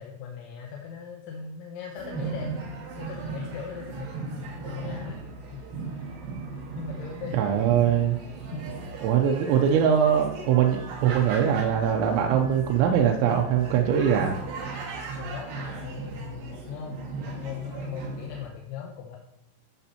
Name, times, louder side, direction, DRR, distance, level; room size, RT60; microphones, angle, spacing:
voice 1, 0.0-5.2 5.5-5.7 5.9-6.2 6.5-7.4 8.5-8.6 15.2-19.2, left 7 dB, 85° left, 1 dB, 3.1 m, -39 dB
sound 1, 2.0-18.5, right 4 dB, 70° right, 3.4 m, -37 dB
voice 2, 7.3-8.2 9.0-14.4, right 8 dB, 90° right, 2 dB, 3.0 m, -22 dB
13.0 x 6.8 x 2.8 m, 0.82 s
omnidirectional pair, 5.1 m